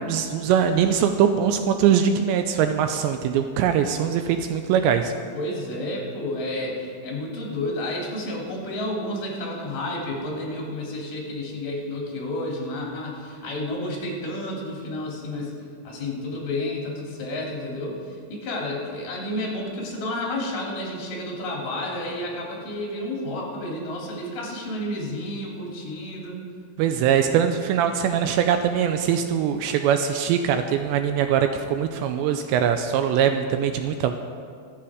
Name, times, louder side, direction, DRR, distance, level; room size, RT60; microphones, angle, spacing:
voice 1, 0.1-5.1 26.8-34.2, right 8 dB, 85° right, 7 dB, 2.6 m, -22 dB
voice 2, 5.3-15.5 15.8-18.0 18.3-26.4, left 1 dB, 50° left, -2 dB, 4.1 m, -31 dB
23.5 x 8.6 x 5.0 m, 2.3 s
omnidirectional pair, 5.6 m